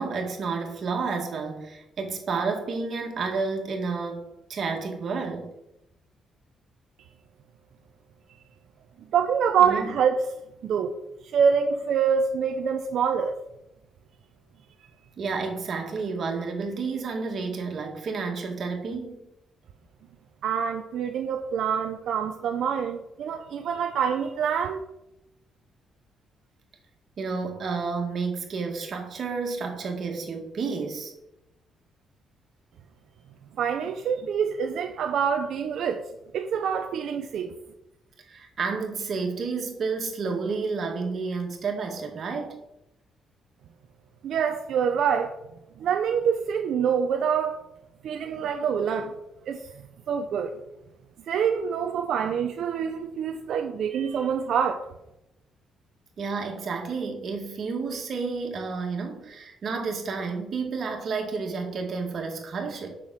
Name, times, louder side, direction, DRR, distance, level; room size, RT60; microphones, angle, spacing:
voice 1, 0.0-5.5 9.6-9.9 15.2-19.3 27.2-31.1 38.2-42.6 56.2-63.0, right 4 dB, 55° right, 2.1 m, -31 dB
voice 2, 9.1-10.2 10.6-10.9 11.3-13.3 20.4-24.8 33.6-36.0 36.3-37.5 44.2-45.3 45.8-47.6 48.0-49.1 49.5-49.6 50.1-50.6 51.3-54.8, right 7 dB, 70° right, 0.7 m, -25 dB
7.0 x 6.1 x 6.6 m
cardioid pair, 90°, 0 cm